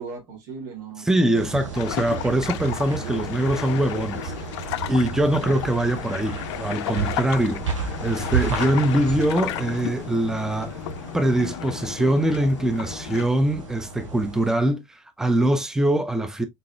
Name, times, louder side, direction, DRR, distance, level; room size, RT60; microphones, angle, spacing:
voice 1, 0.0-1.8 2.8-3.4 5.4-5.8, right 5 dB, 55° right, 1.9 m, -39 dB
voice 2, 1.1-4.3 4.9-10.8 11.1-16.4, right 1 dB, 5° right, 0.7 m, -23 dB
sound 1, 1.4-14.5, right 5 dB, 80° right, 1.1 m, -33 dB
sound 2, 1.7-13.3, left 13 dB, 60° left, 0.4 m, -33 dB
4.0 x 3.7 x 2.2 m
figure-of-eight pair, 65°, 16 cm